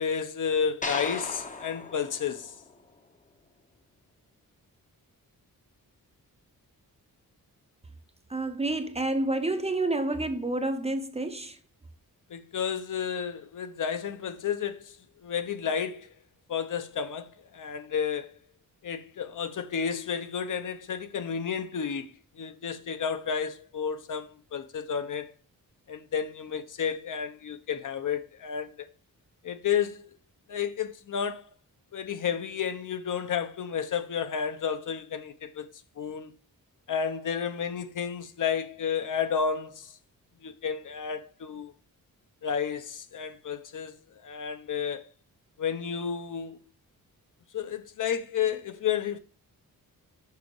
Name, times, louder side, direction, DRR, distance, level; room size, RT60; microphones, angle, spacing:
voice 1, 0.0-2.5 12.3-15.0 15.2-16.1 16.5-18.3 18.8-25.3 25.9-28.9 29.4-30.0 30.5-31.4 31.9-35.7 36.0-36.3 36.9-39.9 40.4-41.7 42.4-43.9 44.2-45.1 45.6-46.6 47.5-49.2, left 7 dB, 60° left, 0.8 m, -31 dB
sound 1, 0.8-3.2, left 3 dB, 20° left, 0.7 m, -37 dB
voice 2, 8.3-11.6, right 2 dB, 20° right, 0.6 m, -29 dB
6.8 x 5.6 x 4.8 m
wide cardioid pair, 150°, 35 cm